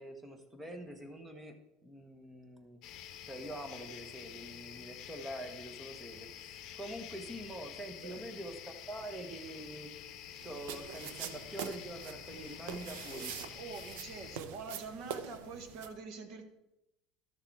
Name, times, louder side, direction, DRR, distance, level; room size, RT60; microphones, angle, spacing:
voice 1, 0.0-1.6 1.8-2.8 3.3-9.9 10.4-13.3, right 1 dB, 10° right, 6 dB, 1.2 m, -45 dB
sound 1, 2.8-14.4, left 10 dB, 45° left, 0.9 m, -49 dB
voice 2, 8.0-8.4 13.5-16.4, right 4 dB, 45° right, 7 dB, 1.4 m, -45 dB
sound 2, 10.4-15.9, right 7 dB, 75° right, 0.8 m, -44 dB
12.5 x 6.7 x 4.6 m, 0.87 s
cardioid pair, 150°, 0 cm